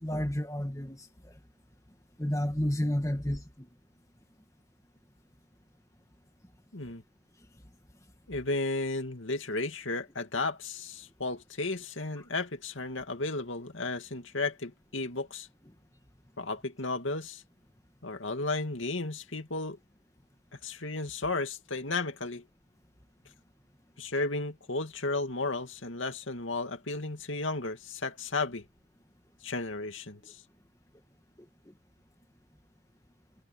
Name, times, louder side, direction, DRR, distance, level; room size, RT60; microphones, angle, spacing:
voice 1, 0.0-1.1 2.2-3.7, equal, 15° left, 2.1 m, -31 dB
voice 2, 8.3-15.5 16.4-17.4 18.0-19.8 20.6-22.4 24.0-28.6 29.4-30.4, left 3 dB, 90° left, 2.5 m, -34 dB
head